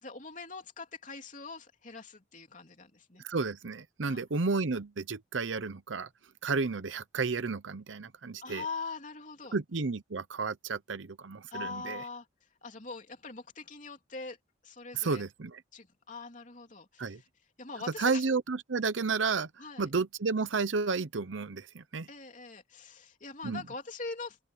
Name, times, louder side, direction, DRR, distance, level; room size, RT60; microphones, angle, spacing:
voice 1, 0.0-3.2 4.0-4.2 8.4-9.6 11.5-12.3 12.6-14.4 14.6-15.2 15.7-17.3 17.6-18.3 19.6-19.9 22.1-24.4, left 4 dB, 45° left, 3.3 m, -42 dB
voice 2, 3.2-6.1 6.4-8.6 9.5-12.0 14.9-15.6 17.0-17.2 18.0-19.5 19.8-22.1 23.4-23.6, right 4 dB, 85° right, 0.8 m, -32 dB
open air
head